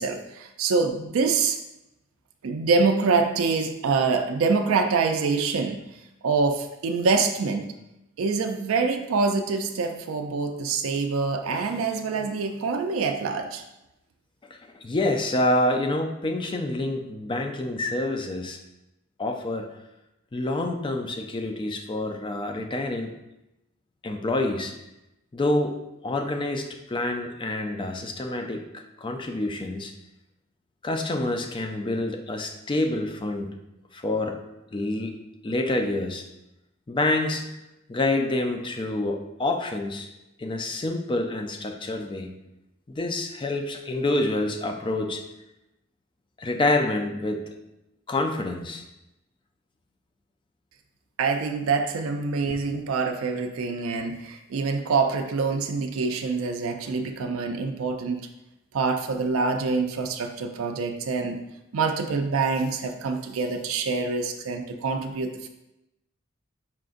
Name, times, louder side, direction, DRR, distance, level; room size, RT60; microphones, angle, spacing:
voice 1, 0.0-1.6 2.4-5.8 6.2-7.7 8.2-13.6 51.2-58.3 58.7-61.4 61.7-65.5, right 4 dB, 70° right, 4 dB, 0.4 m, -25 dB
voice 2, 14.5-18.6 19.2-19.7 20.3-23.1 24.0-24.7 25.3-25.8 26.0-29.9 30.8-33.5 33.9-34.4 34.7-35.2 35.4-36.2 36.9-37.5 37.9-40.1 40.4-42.3 42.9-45.2 46.4-47.4 48.1-48.8, left 2 dB, 25° left, 5 dB, 0.4 m, -27 dB
5.6 x 3.8 x 2.5 m, 0.91 s
head